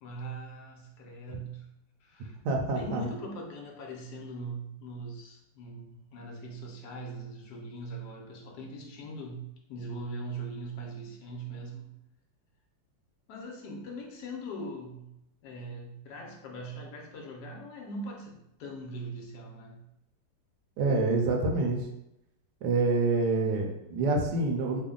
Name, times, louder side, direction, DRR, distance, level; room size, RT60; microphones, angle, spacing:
voice 1, 0.0-1.7 2.0-2.4 2.7-12.0 13.3-15.1 15.4-19.9 23.3-23.8, right 1 dB, 70° left, 1 dB, 1.2 m, -41 dB
voice 2, 2.4-3.0 20.8-21.8 22.6-24.8, right 3 dB, 70° right, 2 dB, 1.1 m, -27 dB
3.3 x 2.1 x 3.7 m, 0.85 s
omnidirectional pair, 2.0 m